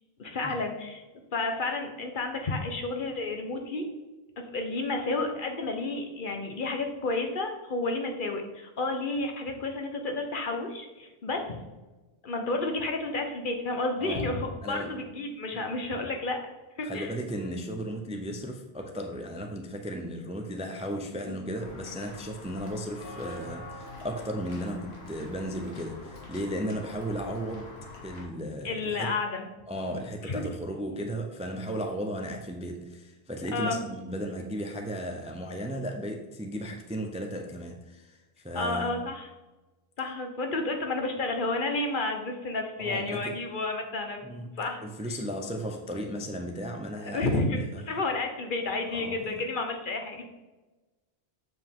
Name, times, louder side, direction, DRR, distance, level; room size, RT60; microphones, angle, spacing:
voice 1, 0.2-1.0 1.3-3.9 4.4-11.6 12.2-16.5 16.8-17.1 21.3-21.4 28.6-29.5 30.2-30.4 33.5-33.8 38.5-39.3 40.0-44.2 44.6-44.8 47.0-47.6 47.9-50.2, left 3 dB, 55° left, 4 dB, 1.0 m, -31 dB
voice 2, 14.6-14.9 15.5-15.7 16.8-27.7 28.0-29.1 29.7-38.2 38.4-38.9 42.8-43.4 44.2-47.4 47.7-47.8 48.9-49.3, equal, 10° right, 3 dB, 0.4 m, -35 dB
Walk footsteps / Bell, 21.6-28.2, left 2 dB, 75° left, 1.7 m, -44 dB
7.6 x 4.8 x 3.7 m, 1.2 s
omnidirectional pair, 1.1 m